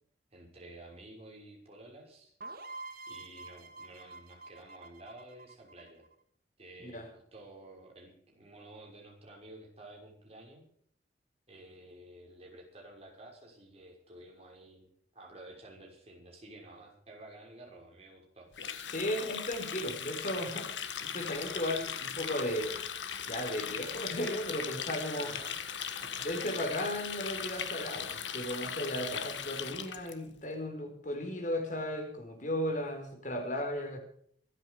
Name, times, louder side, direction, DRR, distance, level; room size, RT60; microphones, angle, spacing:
voice 1, 0.3-2.3 3.1-6.0 6.6-10.6 11.5-18.5 25.1-25.6 26.0-26.3, right 1 dB, 35° right, -1 dB, 6.1 m, -52 dB
sound 1, 2.4-6.1, right 3 dB, 55° right, 2.0 m, -47 dB
Water tap faucet, 18.5-30.1, left 8 dB, 90° left, 1.6 m, -39 dB
voice 2, 18.9-20.7 21.0-22.8 23.3-25.3 26.2-34.0, left 1 dB, 45° left, 5 dB, 4.5 m, -35 dB
25.0 x 9.1 x 5.2 m, 0.64 s
head